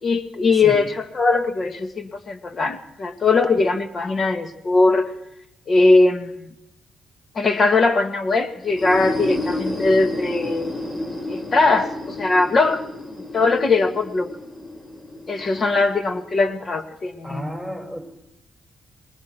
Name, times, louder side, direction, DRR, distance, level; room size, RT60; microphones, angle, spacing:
voice 1, 0.0-5.1 5.7-6.3 7.4-10.7 11.3-12.8 13.3-14.3 15.3-17.5, left 3 dB, 45° left, 7 dB, 2.0 m, -20 dB
sound 1, 8.6-16.3, left 1 dB, 30° left, 5.3 m, -31 dB
voice 2, 17.2-18.0, equal, 10° left, 4 dB, 5.5 m, -32 dB
27.0 x 21.0 x 4.6 m, 0.84 s
cardioid pair, 95°, 0 cm